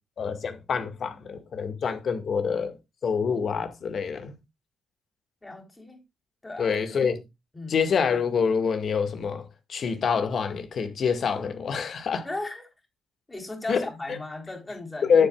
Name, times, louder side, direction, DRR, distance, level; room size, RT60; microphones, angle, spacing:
voice 1, 0.2-2.8 3.0-4.4 6.6-7.2 7.7-12.3 13.7-13.9 15.0-15.3, left 6 dB, 55° left, 1.9 m, -26 dB
voice 2, 5.4-6.0 6.4-7.0 7.5-7.8 12.2-12.7 13.3-15.2, left 2 dB, 20° left, 3.7 m, -36 dB
11.0 x 7.6 x 2.4 m
cardioid pair, 90°, 0 cm